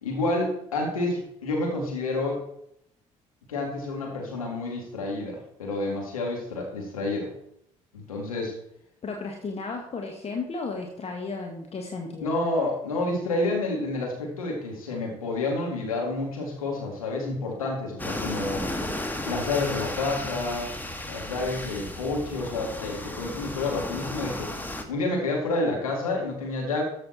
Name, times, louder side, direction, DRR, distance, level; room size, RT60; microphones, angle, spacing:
voice 1, 0.0-2.4 3.5-7.3 7.9-8.5 12.2-18.7 19.2-20.7 21.1-24.5 24.9-26.8, left 2 dB, 80° left, -1 dB, 2.1 m, -29 dB
voice 2, 9.0-12.3, left 4 dB, 35° left, 2 dB, 1.5 m, -34 dB
sound 1, 18.0-24.8, left 1 dB, 10° left, 1.6 m, -34 dB
13.5 x 6.5 x 4.2 m, 0.73 s
figure-of-eight pair, 50°, 18 cm